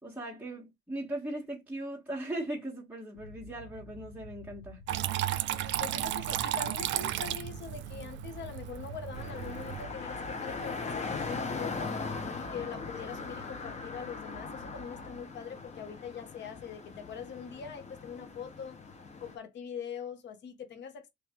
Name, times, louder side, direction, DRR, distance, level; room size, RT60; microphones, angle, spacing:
voice 1, 0.0-4.8, right 1 dB, 5° right, 1.2 m, -38 dB
sound 1, 3.2-15.2, equal, 10° left, 1.3 m, -51 dB
Water tap faucet / Trickle dribble, 4.9-9.9, right 13 dB, 70° right, 0.4 m, -34 dB
voice 2, 5.5-11.9 12.4-18.8 19.2-21.1, left 7 dB, 65° left, 1.0 m, -43 dB
sound 2, 9.1-19.4, left 4 dB, 35° left, 0.9 m, -40 dB
3.2 x 3.2 x 3.0 m
supercardioid pair, 80°, 20 cm